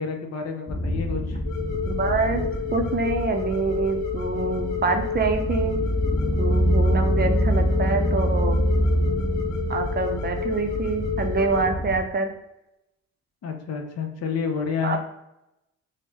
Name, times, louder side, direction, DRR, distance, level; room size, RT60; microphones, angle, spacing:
voice 1, 0.0-1.4 13.4-15.0, left 6 dB, 55° left, 3 dB, 0.7 m, -29 dB
sound 1, 0.7-12.0, equal, 15° left, 0.5 m, -25 dB
sound 2, 1.4-11.7, left 8 dB, 85° left, 0.8 m, -31 dB
voice 2, 1.8-2.4 2.7-5.8 6.4-8.6 9.7-12.3 14.8-15.0, right 4 dB, 35° right, 5 dB, 0.5 m, -26 dB
4.4 x 2.1 x 3.2 m, 0.89 s
cardioid pair, 90°, 30 cm